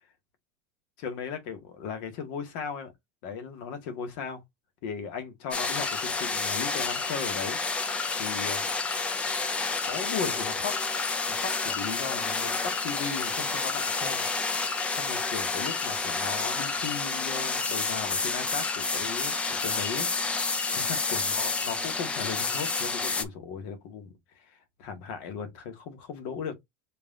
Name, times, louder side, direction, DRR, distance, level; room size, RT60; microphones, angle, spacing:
voice 1, 1.0-2.9 3.2-4.4 4.8-8.7 9.8-10.8 11.2-14.3 14.9-20.1 20.3-26.5, left 6 dB, 65° left, 1.7 m, -37 dB
sound 1, 5.5-23.2, left 4 dB, 20° left, 0.6 m, -29 dB
5.6 x 3.3 x 2.7 m
supercardioid pair, 145°, 7 cm